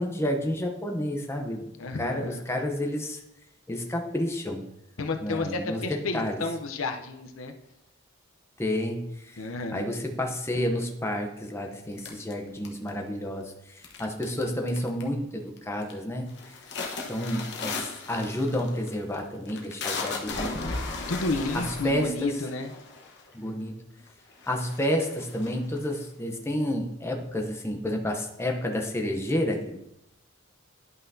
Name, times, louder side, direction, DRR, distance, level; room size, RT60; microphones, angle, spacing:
voice 1, 0.0-1.6 2.0-3.2 3.7-4.6 5.2-5.8 6.1-6.4 8.6-9.4 9.7-16.4 17.1-20.5 21.5-22.3 23.3-23.7 24.5-29.8, left 1 dB, 15° left, 2 dB, 0.7 m, -30 dB
voice 2, 1.8-2.4 5.0-7.5 9.4-9.9 21.1-22.7, left 3 dB, 90° left, 6 dB, 0.7 m, -31 dB
sound 1, 12.0-13.1 13.8-14.4 14.7-15.2 15.6-15.9 16.3-23.3 24.0-24.1 24.4-26.0, left 3 dB, 55° left, 1.1 m, -36 dB
11.0 x 5.7 x 2.7 m, 0.84 s
head